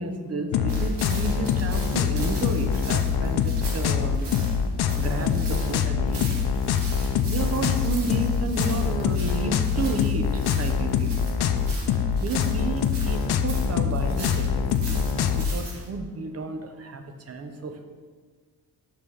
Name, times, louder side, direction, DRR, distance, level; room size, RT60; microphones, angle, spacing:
voice 1, 0.0-4.3 5.0-6.5 7.3-11.2 12.2-17.8, right 3 dB, 35° right, 7 dB, 0.6 m, -32 dB
sound 1, 0.5-15.5, left 7 dB, 65° left, 0.5 m, -24 dB
sound 2, 0.7-15.9, right 3 dB, 75° right, 1.6 m, -41 dB
6.1 x 5.1 x 5.5 m, 1.5 s
wide cardioid pair, 155°, 42 cm